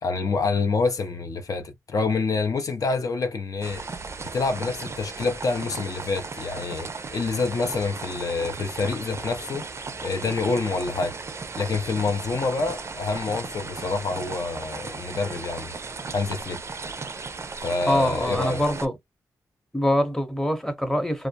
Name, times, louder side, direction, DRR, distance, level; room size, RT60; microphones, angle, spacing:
voice 1, 0.0-3.8 4.3-9.7 10.0-11.2 11.6-15.7 16.1-16.6 17.6-18.6, left 4 dB, 55° left, 0.5 m, -27 dB
sound 1, 3.6-18.9, right 4 dB, 40° right, 0.4 m, -36 dB
voice 2, 17.9-18.9 19.7-21.3, left 1 dB, 5° left, 0.7 m, -24 dB
2.3 x 2.0 x 2.7 m
cardioid pair, 55°, 7 cm